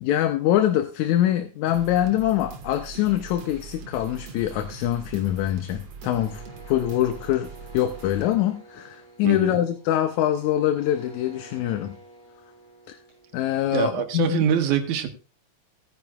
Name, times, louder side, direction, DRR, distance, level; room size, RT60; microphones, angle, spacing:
voice 1, 0.0-12.0 12.9-13.0 13.3-14.4, left 12 dB, 80° left, 8 dB, 2.1 m, -24 dB
sound 1, 1.7-8.3, right 5 dB, 60° right, 2.4 m, -42 dB
sound 2, 6.0-13.8, right 2 dB, 60° left, 8.3 m, -49 dB
voice 2, 9.2-9.6 13.7-15.1, right 8 dB, 80° right, 7 dB, 2.6 m, -24 dB
18.0 x 9.6 x 2.3 m, 0.33 s
omnidirectional pair, 3.4 m